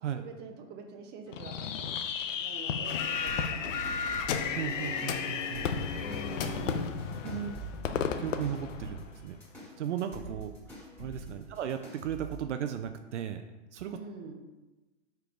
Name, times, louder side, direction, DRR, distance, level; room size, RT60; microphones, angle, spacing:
voice 1, 0.2-1.9 2.3-4.2 5.9-7.1 11.3-11.5 13.9-14.3, right 4 dB, 25° right, 3 dB, 1.0 m, -45 dB
Fireworks, 1.3-9.5, left 7 dB, 80° left, 0.7 m, -35 dB
sound 1, 2.8-7.8, left 5 dB, 50° left, 0.8 m, -36 dB
sound 2, 3.3-12.4, right 2 dB, 5° left, 2.0 m, -46 dB
voice 2, 4.5-5.8 6.5-6.7 7.0-7.6 8.2-9.4 9.8-10.5 11.0-13.4 13.7-14.0, right 9 dB, 70° right, 7 dB, 0.6 m, -36 dB
4.9 x 4.7 x 4.8 m, 1.1 s
hypercardioid pair, 125°, 37 cm